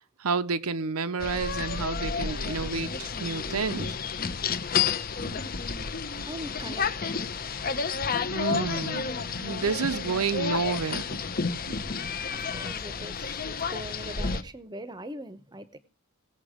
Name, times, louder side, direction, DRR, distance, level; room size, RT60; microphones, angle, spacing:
voice 1, 0.2-3.9 8.3-11.2 11.7-11.8, right 5 dB, 85° right, 0.7 m, -30 dB
sound 1, 1.2-14.4, left 5 dB, 40° left, 0.8 m, -31 dB
voice 2, 5.2-5.5 6.2-7.2 12.3-15.8, equal, 20° right, 0.8 m, -42 dB
18.0 x 7.1 x 5.0 m
head